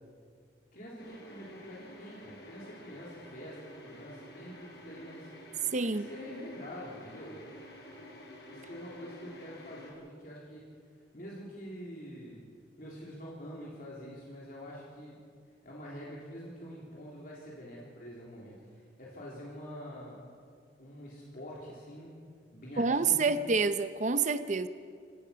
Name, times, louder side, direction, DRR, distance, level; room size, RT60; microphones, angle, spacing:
voice 1, 0.7-5.3 5.8-7.4 8.5-10.6 11.1-12.4 12.8-15.2 15.6-20.2 20.8-22.1 22.5-23.3, equal, 50° left, -5 dB, 3.5 m, -46 dB
sound 1, 1.0-9.9, left 1 dB, 65° left, 4.8 m, -50 dB
voice 2, 5.7-6.1 22.8-24.7, right 4 dB, 40° right, 11 dB, 0.7 m, -28 dB
27.0 x 17.0 x 5.8 m, 2.1 s
head